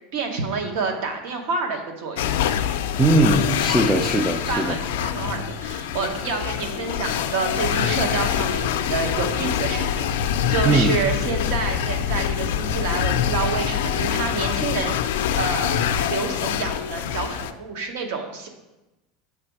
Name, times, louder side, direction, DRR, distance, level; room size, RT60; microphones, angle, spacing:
voice 1, 0.1-2.2 4.5-14.9 15.4-18.5, right 4 dB, 70° right, 4 dB, 1.1 m, -28 dB
sound 1, 2.2-17.5, left 9 dB, 85° left, 0.3 m, -25 dB
voice 2, 3.0-4.8 10.6-11.0, right 2 dB, 5° right, 3 dB, 0.3 m, -20 dB
7.9 x 3.3 x 4.5 m, 1.0 s
supercardioid pair, 155°, 0 cm